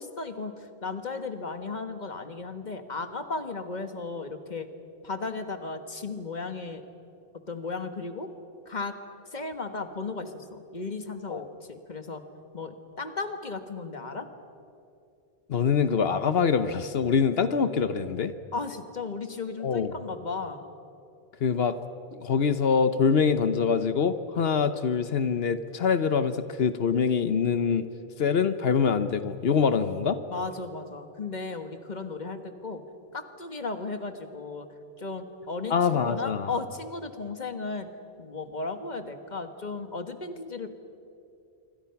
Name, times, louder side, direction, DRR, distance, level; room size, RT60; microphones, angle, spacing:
voice 1, 0.0-4.7 5.0-6.8 7.5-8.3 8.7-8.9 9.3-12.2 12.5-14.3 18.5-20.7 30.3-32.8 33.1-34.7 35.0-37.9 38.2-40.7, left 3 dB, 45° left, 8 dB, 1.6 m, -35 dB
voice 2, 15.5-18.3 19.6-19.9 21.4-21.8 22.1-27.9 28.2-30.2 35.7-36.5, left 6 dB, 70° left, 11 dB, 1.1 m, -24 dB
27.0 x 24.0 x 5.9 m, 2.6 s
omnidirectional pair, 1.1 m